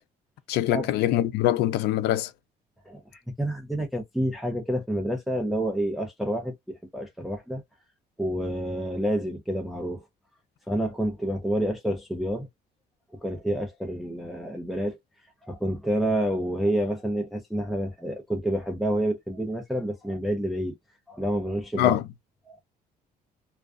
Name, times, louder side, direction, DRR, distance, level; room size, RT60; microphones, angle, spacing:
voice 1, 0.5-2.3 21.7-22.0, left 13 dB, 75° left, 0.4 m, -23 dB
voice 2, 2.9-7.6 8.2-10.1 10.7-12.5 13.2-15.0 15.4-20.7 21.1-22.0 22.5-22.6, right 1 dB, ahead, 0.6 m, -28 dB
2.4 x 2.3 x 2.4 m
cardioid pair, 110°, 17 cm